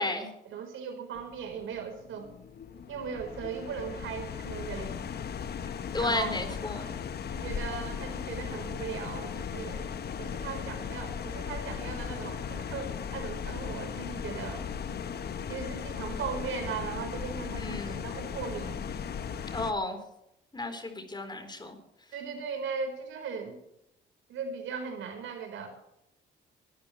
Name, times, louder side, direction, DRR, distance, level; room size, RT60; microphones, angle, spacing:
voice 1, 0.4-2.3 2.9-5.0 6.0-6.3 7.3-9.9 10.2-14.7 15.5-19.0 22.1-23.6 24.3-25.7, right 6 dB, 80° right, 5 dB, 4.5 m, -38 dB
sound 1, 1.1-19.7, left 7 dB, 55° left, 1.2 m, -37 dB
voice 2, 5.9-6.9 17.6-18.1 19.5-20.0 20.5-21.8, left 2 dB, 20° left, 6 dB, 4.1 m, -33 dB
22.0 x 13.0 x 3.3 m, 0.79 s
cardioid pair, 90°, 20 cm